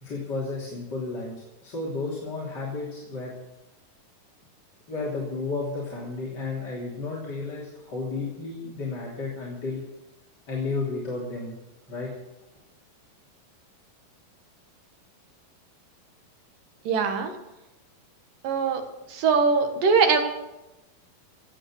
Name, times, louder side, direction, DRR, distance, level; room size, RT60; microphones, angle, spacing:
voice 1, 0.0-3.3 4.9-9.8 10.5-11.6 11.9-12.1, left 3 dB, 30° left, -5 dB, 3.2 m, -32 dB
voice 2, 16.8-17.3 18.4-18.8 19.1-20.2, right 5 dB, 65° right, 5 dB, 2.9 m, -22 dB
16.5 x 8.8 x 6.3 m, 0.98 s
omnidirectional pair, 4.4 m